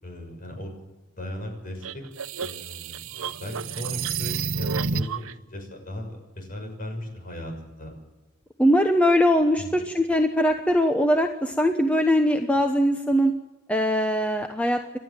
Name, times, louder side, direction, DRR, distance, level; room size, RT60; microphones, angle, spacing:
voice 1, 0.0-0.8 1.1-2.0 2.4-3.0 3.4-7.9 9.6-9.8, left 1 dB, 40° left, 3 dB, 6.2 m, -37 dB
sound 1, 1.8-5.3, right 5 dB, 85° right, 0.9 m, -30 dB
voice 2, 8.6-13.3 13.7-14.8, equal, 5° left, 5 dB, 1.0 m, -21 dB
29.0 x 12.5 x 7.6 m, 1.1 s
head